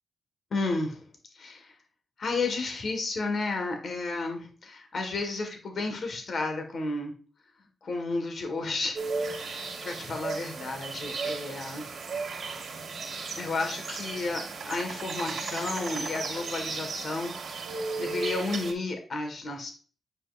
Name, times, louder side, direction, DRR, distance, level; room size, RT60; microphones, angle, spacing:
voice 1, 0.5-1.0 1.3-1.7 2.2-7.1 7.8-9.0 9.3-12.1 13.4-14.4 14.7-17.3 18.0-19.7, left 3 dB, 60° left, 4 dB, 1.7 m, -32 dB
sound 1, 9.0-18.7, right 4 dB, 75° right, 1.8 m, -35 dB
8.7 x 5.3 x 2.6 m, 0.39 s
cardioid pair, 75°, 0 cm